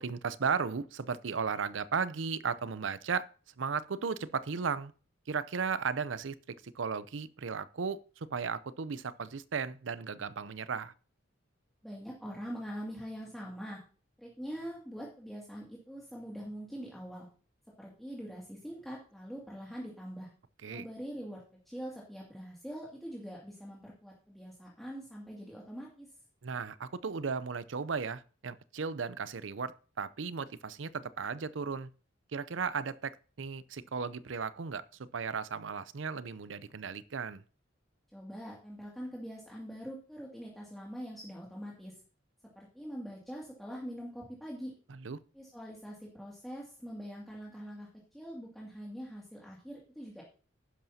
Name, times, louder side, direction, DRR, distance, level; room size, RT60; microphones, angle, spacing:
voice 1, 0.0-3.3 3.6-4.9 5.3-10.9 20.6-20.8 26.4-31.9 32.3-37.4 44.9-45.2, right 5 dB, 85° right, 0.6 m, -35 dB
voice 2, 11.8-13.8 14.2-17.3 17.8-20.3 20.7-26.1 38.1-42.0 42.6-44.7 45.3-50.2, equal, ahead, 2.3 m, -43 dB
11.5 x 10.5 x 2.8 m
head